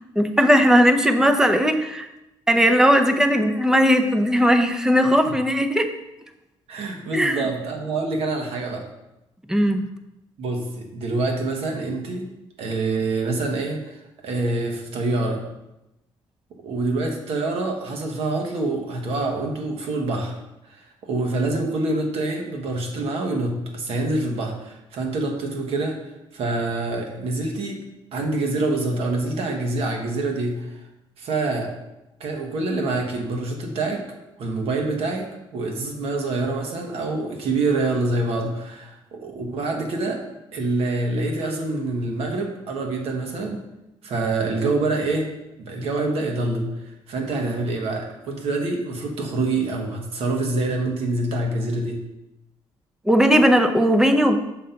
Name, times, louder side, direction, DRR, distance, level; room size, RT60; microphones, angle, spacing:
voice 1, 0.2-2.1 2.5-5.8 7.1-7.4 9.5-9.9 53.1-54.4, equal, 5° right, 7 dB, 0.5 m, -18 dB
voice 2, 6.7-8.9 10.4-12.3 12.6-14.0 14.2-15.4 16.6-20.3 20.7-26.0 26.3-27.8 28.1-30.7 31.2-31.7 32.2-34.0 34.4-35.2 35.5-40.2 40.5-43.6 44.0-45.3 45.6-46.7 47.1-52.0, right 2 dB, 75° right, 2 dB, 1.4 m, -26 dB
6.5 x 3.9 x 5.7 m, 0.92 s
cardioid pair, 150°, 10 cm